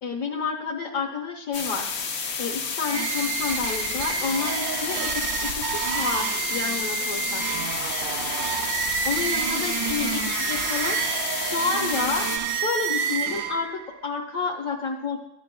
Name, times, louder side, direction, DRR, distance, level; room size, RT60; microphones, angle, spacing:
voice 1, 0.0-1.9 2.4-7.4 9.0-11.0 11.5-15.2, left 5 dB, 70° left, -2 dB, 1.4 m, -30 dB
sound 1, 1.5-12.4, left 5 dB, 85° left, 1.4 m, -31 dB
sound 2, 2.9-13.9, right 8 dB, 80° right, 1.1 m, -29 dB
14.0 x 10.5 x 2.2 m, 0.85 s
omnidirectional pair, 1.5 m